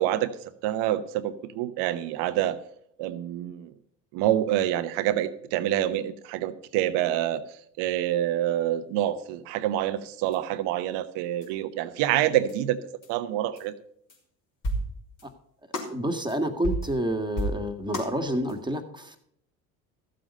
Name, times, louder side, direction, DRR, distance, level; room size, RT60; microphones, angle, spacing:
voice 1, 0.0-2.6 3.0-3.7 4.1-12.8 13.1-13.8, right 12 dB, 70° right, 13 dB, 1.0 m, -27 dB
sound 1, 10.3-10.4 11.4-11.5 12.5-12.6 13.0-13.1 13.6-13.7 14.1-14.2 14.6-15.3 15.7-16.0 16.3-16.4 16.6-17.0 17.4-18.2 18.5-18.6, right 1 dB, 50° left, 4.3 m, -32 dB
voice 2, 15.9-19.2, equal, 10° right, 6 dB, 1.8 m, -29 dB
14.0 x 7.7 x 5.3 m, 0.69 s
hypercardioid pair, 70°, 42 cm